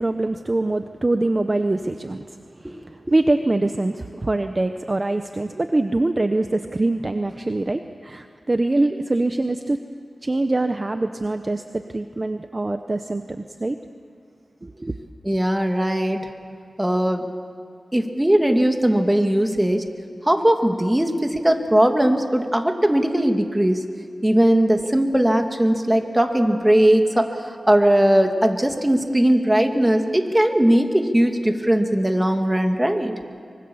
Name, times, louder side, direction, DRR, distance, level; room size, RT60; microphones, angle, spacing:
voice 1, 0.0-2.3 2.6-9.8 10.2-13.8 14.6-14.9, right 2 dB, 30° right, 7 dB, 0.9 m, -24 dB
voice 2, 15.3-16.3 16.8-17.3 17.9-19.8 20.2-23.8 24.2-33.1, right 1 dB, 15° right, 5 dB, 2.1 m, -19 dB
24.5 x 23.5 x 7.1 m, 2.3 s
wide cardioid pair, 70°, 0 cm